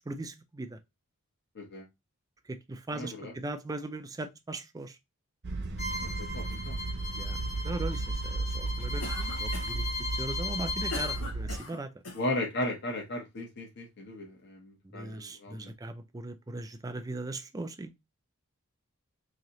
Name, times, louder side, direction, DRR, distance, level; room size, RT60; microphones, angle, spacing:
voice 1, 0.1-0.8 2.7-4.9 7.2-7.4 7.6-9.8 10.2-11.9 14.9-17.9, right 2 dB, 15° right, 0.4 m, -39 dB
voice 2, 2.9-3.3 6.0-6.7 12.1-15.7, left 1 dB, 50° left, 1.1 m, -36 dB
sound 1, 5.4-11.6, right 2 dB, 50° right, 0.7 m, -34 dB
Bowed string instrument, 5.8-11.2, left 2 dB, 30° left, 1.1 m, -37 dB
Cough, 9.0-9.9 10.5-12.3, left 3 dB, 90° left, 1.0 m, -41 dB
3.1 x 2.8 x 3.9 m
head